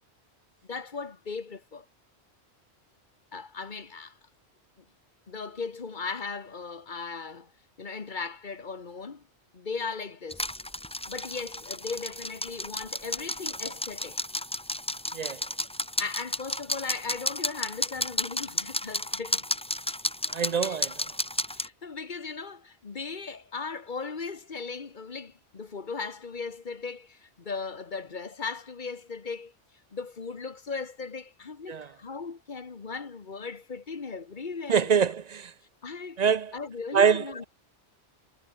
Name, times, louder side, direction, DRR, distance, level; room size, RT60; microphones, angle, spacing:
voice 1, 0.7-1.8 3.3-4.2 5.3-7.5 7.8-9.2 9.5-10.5 11.1-14.2 16.0-19.5 20.6-20.8 21.5-29.5 29.9-34.9 35.8-36.2 36.5-37.5, left 4 dB, 45° left, 1.5 m, -37 dB
sound 1, 10.3-21.7, left 1 dB, 5° left, 0.6 m, -32 dB
voice 2, 20.3-20.9 31.7-31.9 34.7-35.5 36.2-36.5 36.9-37.4, right 6 dB, 45° right, 0.6 m, -24 dB
omnidirectional pair, 1.1 m